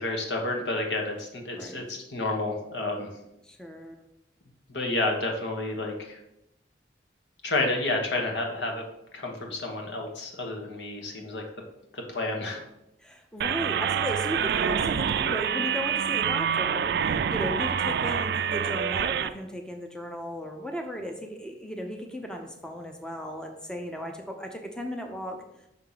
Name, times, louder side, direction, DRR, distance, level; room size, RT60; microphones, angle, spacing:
voice 1, 0.0-3.1 4.7-6.2 7.4-8.8 9.1-11.4 11.9-12.6, left 2 dB, 80° left, 1 dB, 1.3 m, -30 dB
voice 2, 1.6-1.9 3.4-3.9 13.0-25.4, equal, 5° left, 3 dB, 0.6 m, -36 dB
sound 1, 13.4-19.3, right 8 dB, 60° right, 0.3 m, -26 dB
5.7 x 3.6 x 5.6 m, 0.86 s
head